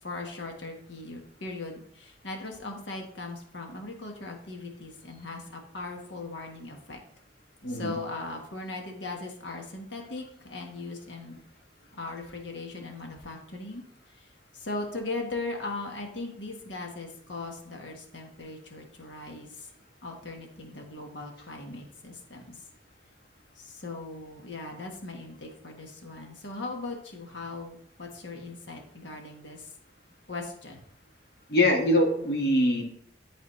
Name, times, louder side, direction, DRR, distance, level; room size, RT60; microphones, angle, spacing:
voice 1, 0.0-7.0 7.7-11.4 11.9-13.8 14.1-14.3 14.5-19.7 20.0-22.4 23.5-29.7 30.3-30.8 32.2-32.3, left 3 dB, 85° left, 2 dB, 1.4 m, -39 dB
voice 2, 7.6-8.0 31.5-32.8, left 1 dB, 55° left, 1 dB, 1.4 m, -23 dB
11.0 x 4.1 x 3.1 m, 0.69 s
head